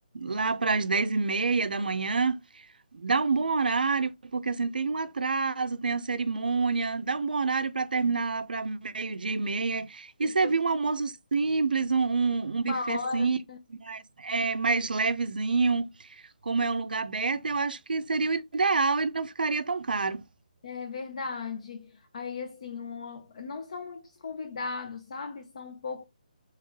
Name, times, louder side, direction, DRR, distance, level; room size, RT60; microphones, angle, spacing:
voice 1, 0.1-2.4 2.9-13.4 13.8-15.9 16.4-20.2, right 4 dB, 90° right, 0.5 m, -27 dB
voice 2, 10.2-10.6 12.6-13.6 20.6-26.0, left 4 dB, 45° left, 0.5 m, -37 dB
3.2 x 3.1 x 3.4 m
hypercardioid pair, 170°, 5 cm